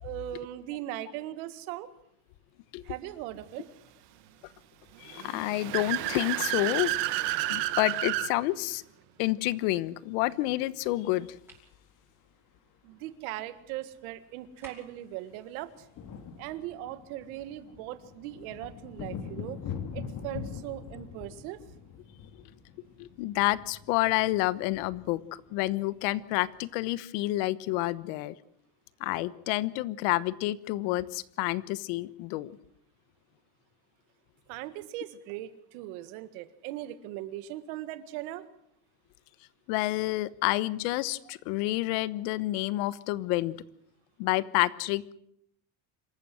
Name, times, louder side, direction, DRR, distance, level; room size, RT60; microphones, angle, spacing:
voice 1, 0.0-1.9 2.8-3.7 12.8-15.9 16.4-19.6 19.9-21.6 34.5-38.5, right 14 dB, 85° right, 12 dB, 1.9 m, -39 dB
voice 2, 5.0-6.9 7.5-8.8 9.2-11.3 23.0-28.3 29.0-32.5 39.7-43.6 44.2-45.1, left 18 dB, 80° left, 18 dB, 1.2 m, -29 dB
Car / Accelerating revving vroom, 5.1-8.3, right 15 dB, 70° right, 1.8 m, -30 dB
sound 1, 10.7-12.3 13.6-13.7 13.9-14.1 14.4-26.5, left 6 dB, 45° left, 2.7 m, -44 dB
sound 2, 11.5-11.7 14.6-15.1, right 2 dB, 5° right, 5.4 m, -51 dB
26.5 x 14.5 x 7.8 m, 0.72 s
cardioid pair, 155°, 42 cm